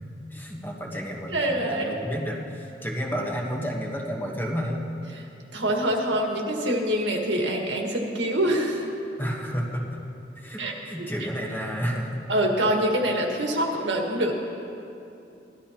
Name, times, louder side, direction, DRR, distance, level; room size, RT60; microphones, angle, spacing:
voice 1, 0.3-4.9 9.2-9.8 10.4-12.2, equal, 10° left, -2 dB, 1.3 m, -31 dB
voice 2, 1.3-2.0 5.1-5.2 5.5-8.9 10.6-11.1 12.3-14.3, right 1 dB, 85° right, 0 dB, 1.7 m, -25 dB
18.5 x 12.5 x 2.9 m, 2.7 s
head